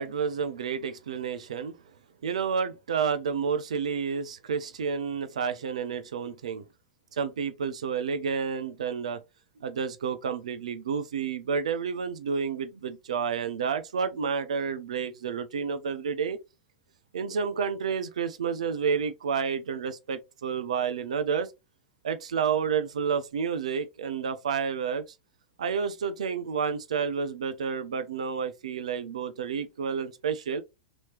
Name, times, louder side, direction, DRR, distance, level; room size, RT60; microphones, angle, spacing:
voice 1, 0.0-1.8 2.2-6.6 7.1-9.2 9.6-16.4 17.1-21.5 22.0-25.0 25.6-30.6, right 6 dB, 80° right, 0.5 m, -30 dB
3.1 x 2.8 x 3.2 m
hypercardioid pair, 95°, 4 cm